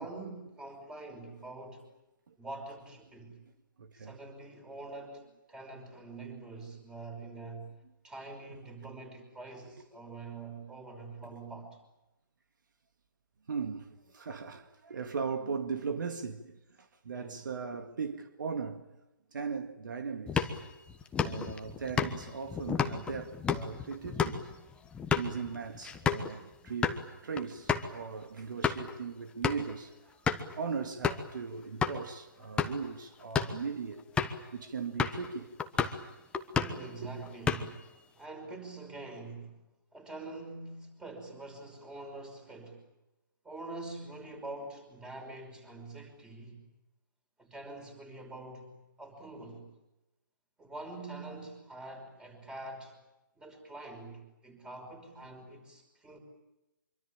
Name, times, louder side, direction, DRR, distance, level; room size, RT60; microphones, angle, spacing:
voice 1, 0.0-1.8 2.4-3.4 3.9-5.2 5.5-7.7 8.0-11.8 17.1-17.4 36.5-39.5 39.9-42.8 43.4-46.6 47.4-49.7 50.6-53.0 53.4-56.2, right 2 dB, 5° right, 5.6 m, -45 dB
voice 2, 3.8-4.2 10.1-10.2 13.5-18.9 19.3-20.6 21.2-24.4 25.2-34.0 34.5-35.6 37.0-37.1, right 5 dB, 65° right, 2.0 m, -38 dB
sound 1, 20.3-26.3 26.7-27.0 27.4-27.5 27.7-27.9 28.4-28.9 29.4-29.7 30.3-30.5 31.0-31.3 31.8-32.0 32.4-32.9 33.2-33.6 34.2-34.5 35.0-35.3 35.6-36.0 36.3-36.9 37.2-37.9, left 6 dB, 10° left, 1.3 m, -31 dB
26.0 x 24.0 x 8.8 m
figure-of-eight pair, 145°, 11 cm